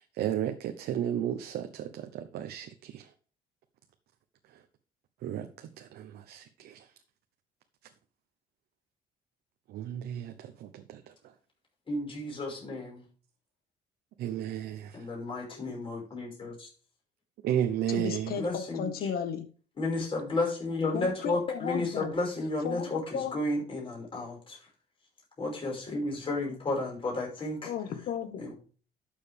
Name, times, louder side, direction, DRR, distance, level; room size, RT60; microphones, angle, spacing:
voice 1, 0.2-3.0 5.2-5.5 5.8-6.8 9.7-11.0 14.2-14.9 17.4-18.3, right 10 dB, 70° right, 7 dB, 0.9 m, -33 dB
voice 2, 11.9-13.0 14.9-16.7 18.4-19.1 19.8-24.6 25.4-27.7 28.4-28.5, left 2 dB, 30° left, -1 dB, 5.4 m, -32 dB
voice 3, 17.9-19.5 20.9-22.1 22.6-23.4 27.6-28.4, left 7 dB, 65° left, 9 dB, 1.6 m, -34 dB
12.0 x 6.7 x 3.5 m, 0.40 s
cardioid pair, 110°, 17 cm